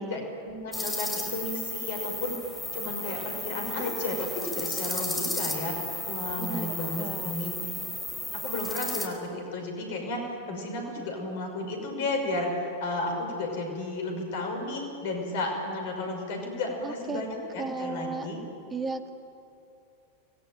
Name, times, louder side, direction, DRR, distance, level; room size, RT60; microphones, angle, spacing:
voice 1, 0.1-2.3 2.7-5.8 6.1-7.6 8.3-18.4, left 2 dB, 55° left, 3 dB, 6.1 m, -33 dB
sound 1, 0.7-9.1, left 1 dB, 5° left, 4.1 m, -34 dB
voice 2, 6.4-7.3 16.8-17.2 17.6-18.3 18.7-19.1, right 3 dB, 15° right, 6 dB, 2.2 m, -35 dB
25.5 x 21.0 x 9.3 m, 2.5 s
figure-of-eight pair, 90°, 0 cm